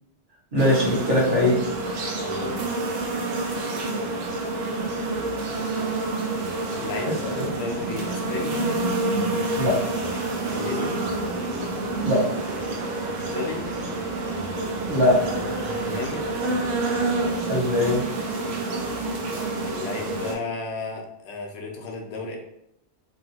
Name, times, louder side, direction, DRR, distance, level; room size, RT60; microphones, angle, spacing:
voice 1, 0.5-1.6 7.0-7.5 9.5-9.9 12.0-12.4 14.9-15.2 17.5-18.0, left 1 dB, 45° right, -6 dB, 1.3 m, -22 dB
sound 1, 0.6-20.3, right 2 dB, 80° right, 1.0 m, -28 dB
voice 2, 2.2-2.7 6.8-8.6 10.4-10.9 13.2-13.6 15.8-16.2 19.6-22.4, left 4 dB, 70° left, 1 dB, 0.9 m, -34 dB
3.1 x 2.6 x 2.8 m, 0.78 s
omnidirectional pair, 1.2 m